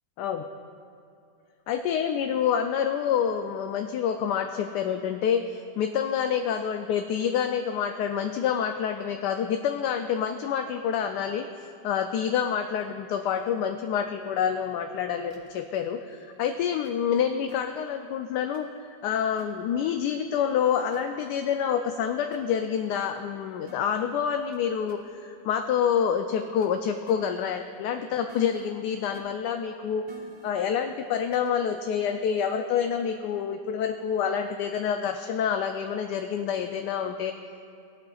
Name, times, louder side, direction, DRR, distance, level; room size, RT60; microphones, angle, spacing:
voice 1, 1.7-11.4 11.8-18.7 19.0-30.0 30.4-37.3, left 8 dB, 75° left, 6 dB, 1.1 m, -27 dB
sound 1, 15.3-15.5 16.8-16.9 17.5-17.6 18.5-18.6 19.4-19.5 20.9-21.0 22.3-22.4 23.7-23.8 24.5-24.6 24.9-25.0 26.6-26.7 27.1-27.2 28.3-28.7 29.1-29.2 30.1-30.5 31.3-31.5, left 1 dB, 60° right, 1.7 m, -47 dB
18.0 x 12.0 x 2.4 m, 2.6 s
omnidirectional pair, 1.9 m